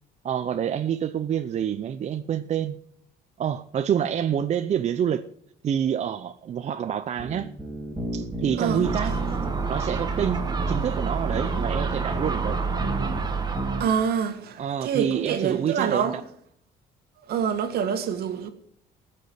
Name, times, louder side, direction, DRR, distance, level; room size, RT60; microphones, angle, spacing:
voice 1, 0.2-2.8 3.4-5.2 5.6-7.5 8.1-9.1 9.7-12.6 14.6-16.1, right 9 dB, 40° right, 0.6 m, -27 dB
sound 1, 7.2-13.2 13.5-13.8, right 1 dB, 5° right, 4.8 m, -33 dB
voice 2, 8.5-8.8 13.8-16.2 17.3-18.5, right 7 dB, 70° right, 1.9 m, -26 dB
Gull seagull, 8.8-13.9, right 5 dB, 25° right, 1.6 m, -28 dB
15.0 x 6.6 x 7.9 m
cardioid pair, 110°, 17 cm